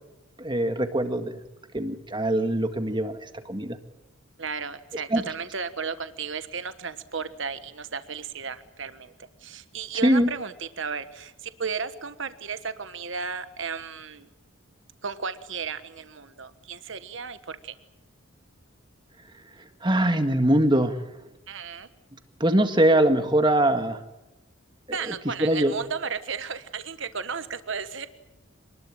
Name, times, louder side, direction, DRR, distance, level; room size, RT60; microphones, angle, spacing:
voice 1, 0.4-1.4 1.7-3.8 5.1-5.2 10.0-10.3 19.8-21.0 22.4-24.0 25.4-25.7, right 1 dB, 20° right, 7 dB, 1.8 m, -22 dB
voice 2, 4.4-14.3 15.0-17.7 21.5-21.9 24.9-28.1, right 5 dB, 60° right, 11 dB, 1.3 m, -34 dB
27.0 x 20.0 x 8.8 m, 0.97 s
head